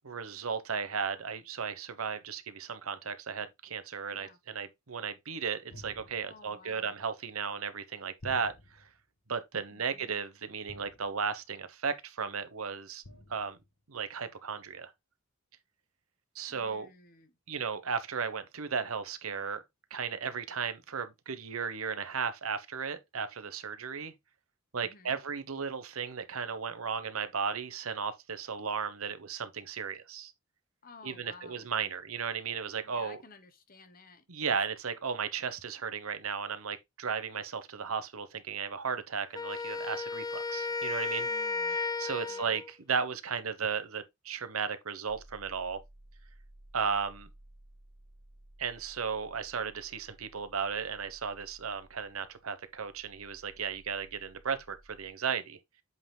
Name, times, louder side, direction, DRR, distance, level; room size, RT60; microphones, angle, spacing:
voice 1, 0.0-8.8 9.3-13.0 13.3-13.6 13.9-14.9 16.3-16.9 17.5-19.6 19.9-24.1 24.7-30.3 31.0-33.2 34.3-41.3 42.0-45.8 46.7-47.3 48.6-55.6, right 6 dB, 90° right, 1.0 m, -35 dB
sound 1, 5.7-6.5 8.2-9.0 10.7-11.4 13.0-13.7, left 1 dB, 85° left, 1.5 m, -51 dB
voice 2, 6.2-7.0 9.7-10.1 16.5-17.4 24.7-25.2 30.8-31.7 32.8-34.5 41.2-41.8 42.3-42.6, left 3 dB, 45° left, 1.2 m, -55 dB
Wind instrument woodwind instrument, 39.3-42.7, left 3 dB, 20° left, 0.3 m, -34 dB
sound 2, 45.1-55.1, right 1 dB, 30° right, 3.0 m, -57 dB
7.9 x 5.8 x 2.2 m
head